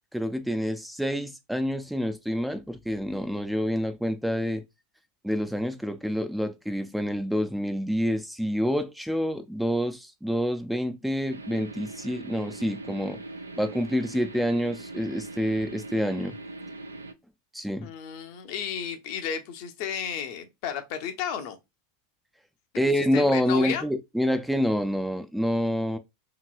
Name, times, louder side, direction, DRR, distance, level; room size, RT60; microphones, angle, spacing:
voice 1, 0.1-4.6 5.2-13.2 13.6-16.3 17.5-17.9 22.8-26.0, equal, ahead, 0.3 m, -27 dB
sound 1, 11.3-17.1, right 2 dB, 85° right, 0.3 m, -40 dB
voice 2, 17.8-21.6 23.0-23.9, left 8 dB, 55° left, 0.6 m, -33 dB
2.9 x 2.9 x 2.3 m
figure-of-eight pair, 85°, 0 cm